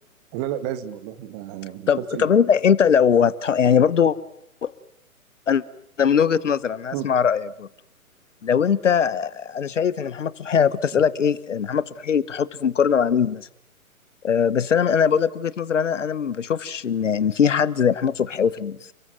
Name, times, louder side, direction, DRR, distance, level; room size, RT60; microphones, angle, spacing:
voice 1, 0.3-2.3 6.9-7.1, right 12 dB, 25° right, 10 dB, 2.2 m, -31 dB
voice 2, 1.9-4.2 4.6-4.7 5.5-5.6 6.0-7.7 8.4-13.5 14.2-18.9, left 7 dB, 55° left, 18 dB, 1.3 m, -21 dB
30.0 x 22.0 x 7.8 m, 0.74 s
figure-of-eight pair, 125°, 43 cm